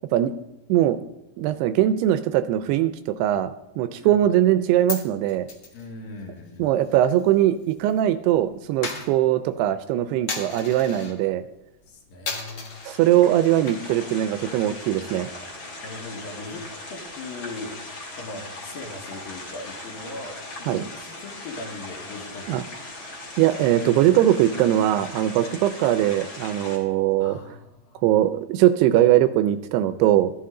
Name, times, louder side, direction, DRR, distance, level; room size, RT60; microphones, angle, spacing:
voice 1, 1.4-3.5 3.8-5.5 6.6-11.4 12.9-15.3 20.7-20.8 22.5-22.6 23.4-27.3 28.0-30.3, right 12 dB, 80° right, 12 dB, 2.5 m, -21 dB
Coin (dropping), 4.5-8.0 8.3-11.2 11.6-11.9 12.2-13.0 13.5-14.1 14.4-14.5 14.9-16.8, left 4 dB, 85° left, 1.0 m, -37 dB
voice 2, 5.7-6.8 11.9-13.0 15.2-15.4 15.8-17.8 18.2-22.7 27.2-28.1, left 3 dB, 65° left, 1 dB, 3.0 m, -39 dB
sound 1, 12.7-26.8, left 2 dB, 35° left, 2.3 m, -39 dB
13.5 x 11.0 x 3.8 m, 0.95 s
omnidirectional pair, 4.9 m